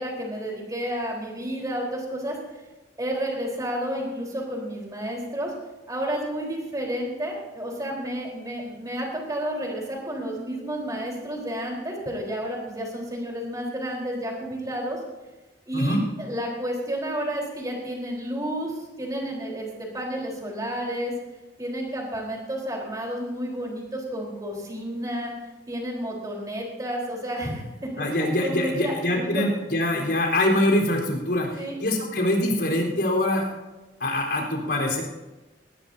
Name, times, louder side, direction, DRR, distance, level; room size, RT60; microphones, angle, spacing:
voice 1, 0.0-2.4 3.0-5.5 5.9-15.0 15.7-18.7 19.0-21.1 21.6-25.3 25.7-27.6 28.0-29.4 31.5-31.8, equal, 20° right, -1 dB, 4.2 m, -31 dB
voice 2, 28.0-33.5 34.0-35.0, left 1 dB, 70° left, -2 dB, 4.2 m, -24 dB
19.0 x 19.0 x 2.8 m, 1.1 s
head